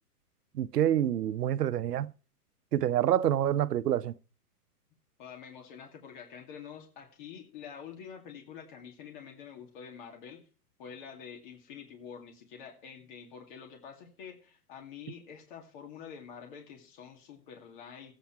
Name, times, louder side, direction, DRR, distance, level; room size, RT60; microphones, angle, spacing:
voice 1, 0.5-2.1 2.7-4.1, right 11 dB, 85° right, 0.8 m, -27 dB
voice 2, 5.2-10.5 10.8-18.1, left 7 dB, 30° left, 2.3 m, -47 dB
14.0 x 8.6 x 4.6 m
hypercardioid pair, 165°, 46 cm